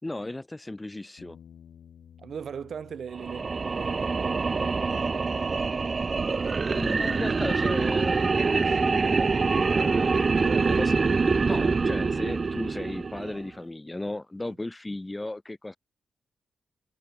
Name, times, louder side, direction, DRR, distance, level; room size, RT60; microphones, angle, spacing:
voice 1, 0.0-1.4 6.5-10.2 10.8-10.9 11.4-15.8, left 2 dB, 15° left, 3.4 m, -36 dB
sound 1, 1.2-7.4, left 8 dB, 80° left, 4.4 m, -55 dB
voice 2, 2.2-5.4 10.2-10.8, right 7 dB, 65° right, 1.6 m, -39 dB
sound 2, 3.1-13.5, right 4 dB, 40° right, 0.5 m, -25 dB
cardioid pair, 95°, 0 cm